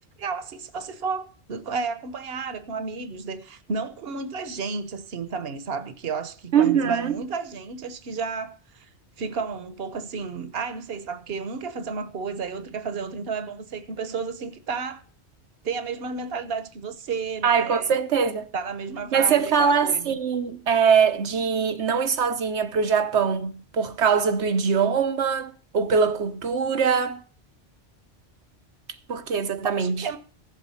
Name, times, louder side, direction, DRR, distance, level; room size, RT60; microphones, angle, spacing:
voice 1, 0.2-8.9 9.2-15.0 15.6-18.0 18.5-20.2 29.1-30.2, right 5 dB, 65° right, 1.2 m, -32 dB
voice 2, 6.5-7.1 17.4-18.5 19.1-27.2 29.1-30.1, right 6 dB, 85° right, 1.3 m, -22 dB
15.0 x 7.6 x 5.7 m
omnidirectional pair, 1.1 m